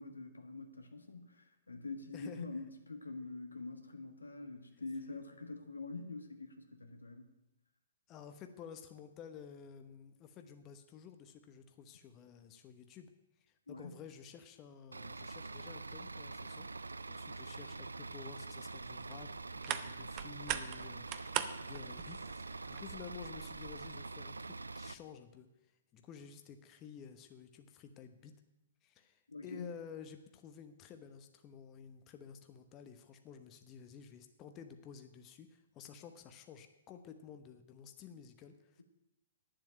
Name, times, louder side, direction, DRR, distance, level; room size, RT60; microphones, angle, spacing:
voice 1, 0.0-7.3 13.7-13.9 29.3-29.7, left 3 dB, 85° left, 6 dB, 1.6 m, -45 dB
voice 2, 2.1-2.5 8.1-13.1 13.4-16.7 17.1-25.5 25.9-28.3 28.8-38.8, left 7 dB, 30° left, 7 dB, 0.9 m, -52 dB
Bus / Idling, 14.9-24.9, right 3 dB, 85° right, 0.3 m, -45 dB
sound 1, 18.7-23.9, right 12 dB, 35° right, 0.8 m, -43 dB
9.3 x 7.7 x 8.9 m, 0.94 s
figure-of-eight pair, 115°, 0 cm